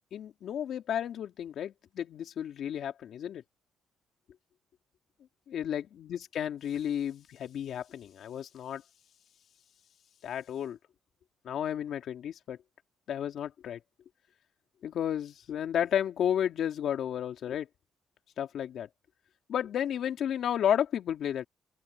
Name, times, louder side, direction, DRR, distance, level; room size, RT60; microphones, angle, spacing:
voice 1, 0.1-3.4 5.5-8.8 10.2-10.8 11.4-12.6 13.1-13.8 14.8-17.7 18.4-18.9 19.5-21.5, left 9 dB, 70° left, 3.0 m, -32 dB
open air
cardioid pair, 90°, 0 cm